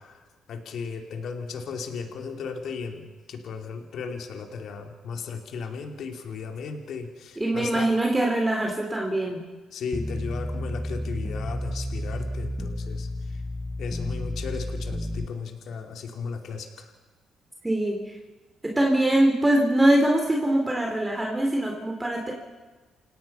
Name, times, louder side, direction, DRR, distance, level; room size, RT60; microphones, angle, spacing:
voice 1, 0.0-7.9 9.7-13.4 13.8-16.9, left 5 dB, 70° left, 4 dB, 2.8 m, -35 dB
voice 2, 7.4-9.4 17.6-18.1 18.6-22.3, right 1 dB, 15° right, 0 dB, 3.5 m, -23 dB
sound 1, 9.9-15.3, left 1 dB, 10° left, 1.6 m, -32 dB
29.0 x 17.5 x 5.7 m, 1.3 s
cardioid pair, 90°, 0 cm